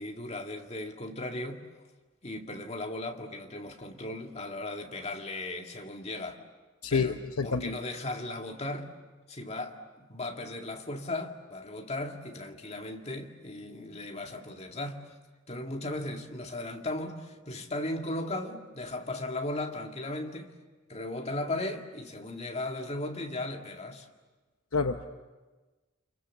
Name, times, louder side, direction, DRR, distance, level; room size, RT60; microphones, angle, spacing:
voice 1, 0.0-1.7 2.2-6.4 6.9-8.9 9.3-15.1 15.5-20.5 20.9-24.1, left 2 dB, 30° left, 2.0 m, -37 dB
voice 2, 6.8-7.7 24.7-25.1, left 5 dB, 90° left, 0.9 m, -28 dB
29.5 x 26.0 x 7.3 m
head